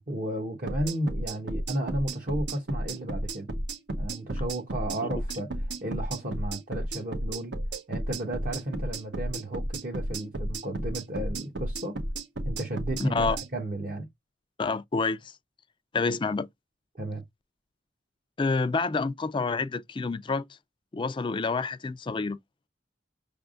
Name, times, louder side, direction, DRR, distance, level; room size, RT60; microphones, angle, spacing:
voice 1, 0.1-3.5 4.0-5.5 5.8-7.5 7.9-12.0 12.4-14.1 17.0-17.2, right 1 dB, 50° right, 1.1 m, -33 dB
sound 1, 0.7-13.5, right 1 dB, 75° right, 1.0 m, -33 dB
voice 2, 13.0-13.4 14.6-15.3 15.9-16.5 18.4-20.4 20.9-22.4, left 4 dB, 30° left, 0.4 m, -28 dB
6.3 x 3.4 x 2.4 m
head